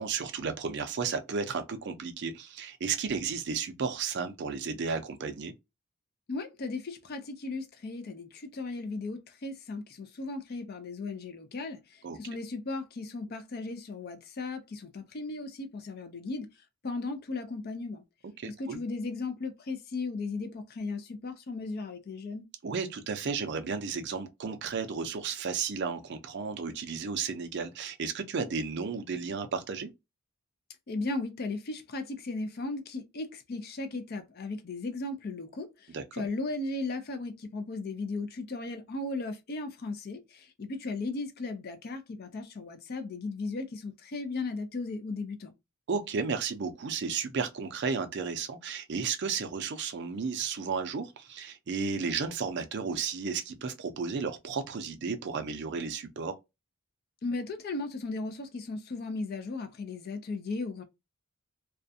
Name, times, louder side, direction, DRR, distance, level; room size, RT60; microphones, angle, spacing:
voice 1, 0.0-5.5 12.0-12.2 18.2-18.8 22.6-29.9 35.9-36.3 45.9-56.3, right 5 dB, 50° right, 0.4 m, -33 dB
voice 2, 6.3-16.5 16.8-18.0 18.4-22.4 30.9-45.5 57.2-60.8, left 3 dB, 45° left, 0.4 m, -36 dB
2.4 x 2.1 x 2.6 m
head